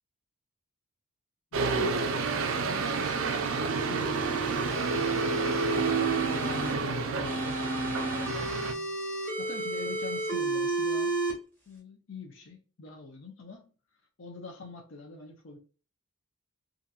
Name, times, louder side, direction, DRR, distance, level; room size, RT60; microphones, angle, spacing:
voice 1, 1.5-4.8 6.3-8.9 9.2-11.2 11.7-13.7 14.2-15.6, left 3 dB, 60° left, 0.6 m, -45 dB
sound 1, 1.5-8.7, right 4 dB, 60° right, 0.3 m, -29 dB
sound 2, 2.8-6.7 7.2-11.3, right 2 dB, 5° left, 1.1 m, -33 dB
2.8 x 2.5 x 2.3 m
head